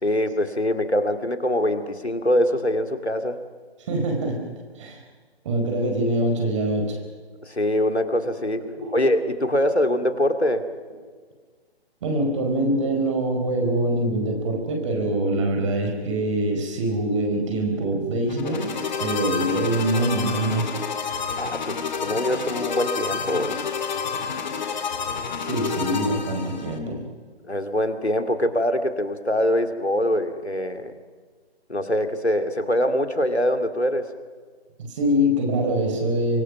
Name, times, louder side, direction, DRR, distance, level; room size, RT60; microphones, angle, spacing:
voice 1, 0.0-3.4 7.4-8.6 8.9-10.6 21.4-23.6 27.5-30.9 31.7-34.0, left 1 dB, 85° left, 8 dB, 2.5 m, -23 dB
voice 2, 3.9-4.5 4.8-5.0 5.4-7.0 8.6-8.9 12.0-18.7 19.0-20.7 25.4-27.1 34.8-36.4, right 1 dB, 30° right, 3 dB, 4.6 m, -24 dB
sound 1, 18.3-26.8, left 6 dB, 45° left, 2.1 m, -29 dB
25.0 x 23.5 x 5.9 m, 1.5 s
figure-of-eight pair, 145°, 32 cm